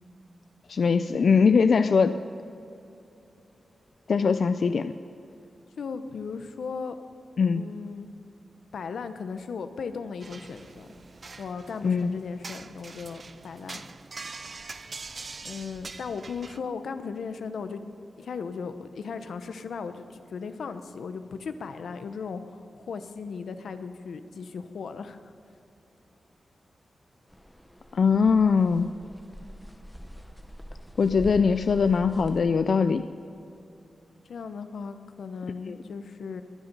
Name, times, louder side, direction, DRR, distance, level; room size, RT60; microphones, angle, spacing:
voice 1, 0.7-2.2 4.1-4.9 7.4-7.6 11.8-12.1 27.9-28.9 31.0-33.1 35.7-35.8, left 5 dB, 55° left, 10 dB, 0.4 m, -21 dB
voice 2, 5.8-7.0 7.6-8.1 8.7-10.9 11.4-13.8 15.4-17.8 18.2-25.2 34.3-36.4, left 5 dB, 85° left, 10 dB, 0.9 m, -37 dB
sound 1, 10.2-16.6, right 4 dB, 35° right, 0.5 m, -43 dB
sound 2, 27.3-32.4, equal, 5° left, 0.8 m, -44 dB
22.0 x 9.9 x 5.4 m, 2.8 s
wide cardioid pair, 180°, 0 cm